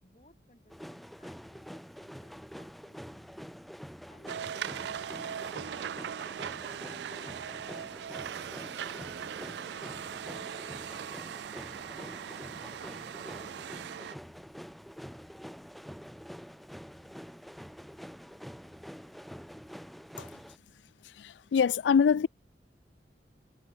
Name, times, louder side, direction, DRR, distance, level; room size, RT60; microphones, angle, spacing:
voice 1, 0.0-3.3 4.1-4.5 5.1-9.9, left 1 dB, 40° left, 4.4 m, -63 dB
sound 1, 0.7-20.6, equal, ahead, 0.4 m, -46 dB
sound 2, 4.3-14.2, right 8 dB, 75° right, 0.3 m, -39 dB
voice 2, 21.0-22.3, left 6 dB, 90° left, 0.3 m, -25 dB
head